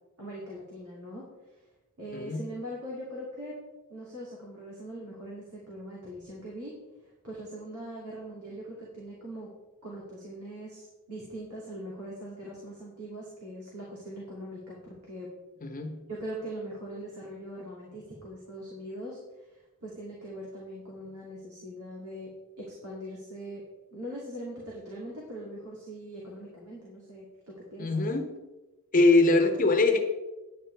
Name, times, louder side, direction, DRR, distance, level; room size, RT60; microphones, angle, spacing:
voice 1, 0.2-1.7 2.0-3.6 3.9-6.7 7.0-9.5 9.8-15.3 16.1-22.3 22.6-23.6 23.9-28.1, right 1 dB, 85° right, -5 dB, 2.8 m, -41 dB
voice 2, 15.6-15.9 27.8-28.3 28.9-30.1, left 2 dB, 40° left, 5 dB, 1.0 m, -22 dB
10.0 x 9.4 x 3.4 m, 1.1 s
head